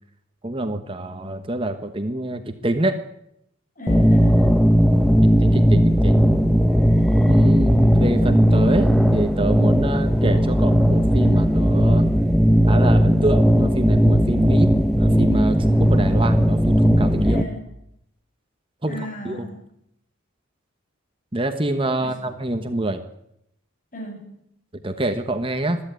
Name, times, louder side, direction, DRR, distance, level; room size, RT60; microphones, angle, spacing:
voice 1, 0.4-3.0 5.4-6.3 7.3-8.9 9.1-12.1 12.7-14.7 15.0-17.4 18.8-19.0 19.2-19.5 21.3-23.0 24.8-25.8, right 1 dB, 25° right, 7 dB, 1.2 m, -25 dB
voice 2, 3.8-4.7 17.2-17.7 18.9-19.6 22.0-22.1 23.9-24.3, equal, 40° left, 3 dB, 6.5 m, -35 dB
sound 1, 3.9-17.4, equal, ahead, 0.9 m, -17 dB
22.5 x 14.0 x 9.2 m, 0.78 s
head